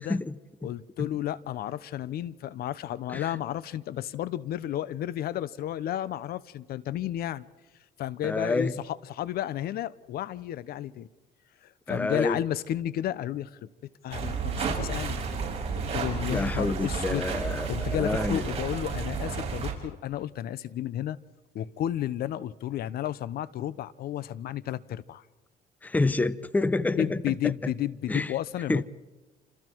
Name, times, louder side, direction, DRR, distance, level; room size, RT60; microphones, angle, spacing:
voice 1, 0.0-0.7 1.0-1.1 3.1-3.2 8.2-8.7 11.9-12.4 16.3-18.4 25.8-27.7 28.1-28.3 28.7-28.8, left 2 dB, 10° left, 17 dB, 0.7 m, -28 dB
voice 2, 0.6-7.5 8.0-11.1 11.6-15.2 15.7-17.3 17.7-21.2 21.5-25.2 27.0-28.8, left 12 dB, 65° left, 18 dB, 0.8 m, -32 dB
sound 1, 14.1-19.7, right 5 dB, 35° right, 6.5 m, -31 dB
29.0 x 27.0 x 4.6 m, 1.2 s
cardioid pair, 110°, 17 cm